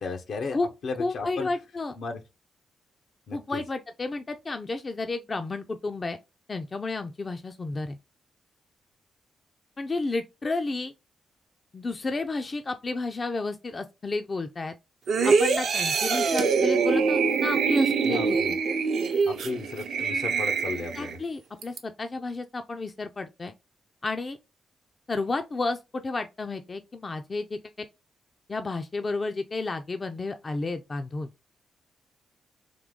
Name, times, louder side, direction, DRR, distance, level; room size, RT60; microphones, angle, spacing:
voice 1, 0.0-0.6 0.8-1.5 2.0-2.2 3.3-3.6 18.0-18.5 19.2-21.2, left 4 dB, 70° left, 0.7 m, -34 dB
voice 2, 1.0-2.0 3.3-6.2 6.5-8.0 9.8-10.9 11.7-14.7 15.2-18.4 20.9-23.5 24.0-24.4 25.1-27.9 28.5-31.3, left 3 dB, 40° left, 0.4 m, -31 dB
sound 1, 15.1-21.2 21.6-21.8, right 5 dB, 75° right, 0.6 m, -24 dB
3.7 x 2.7 x 3.6 m
supercardioid pair, 55°, 0 cm